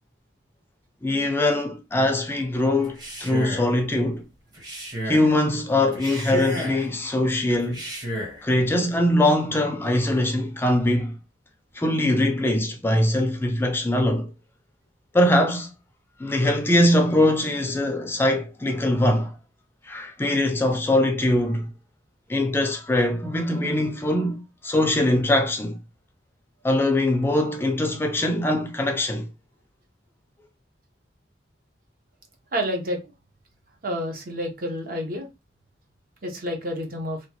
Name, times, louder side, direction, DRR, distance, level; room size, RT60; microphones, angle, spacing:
voice 1, 1.0-4.2 5.0-7.8 8.4-11.1 11.7-14.3 15.1-15.7 16.2-19.3 19.9-21.7 22.3-25.8 26.6-29.3, left 1 dB, 15° left, 0.3 m, -22 dB
Male speech man speaking, 2.8-3.7 4.5-5.3 5.9-6.9 7.6-8.4, equal, 25° right, 0.8 m, -32 dB
voice 2, 32.5-33.0 33.8-35.3 36.2-37.2, equal, 55° right, 0.8 m, -29 dB
2.9 x 2.2 x 2.8 m
head